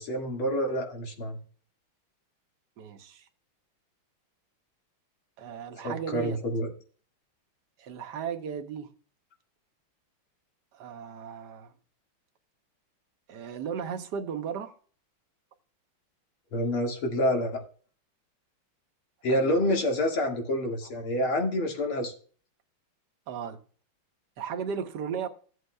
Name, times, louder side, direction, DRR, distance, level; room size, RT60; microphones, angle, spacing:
voice 1, 0.0-1.4 5.8-6.7 16.5-17.7 19.2-22.1, left 1 dB, 80° left, 2.8 m, -27 dB
voice 2, 2.8-3.2 5.4-6.4 7.8-8.9 10.7-11.7 13.3-14.7 19.3-19.4 23.3-23.6 24.4-25.3, right 7 dB, 60° right, 1.4 m, -35 dB
15.5 x 7.9 x 2.2 m
omnidirectional pair, 2.3 m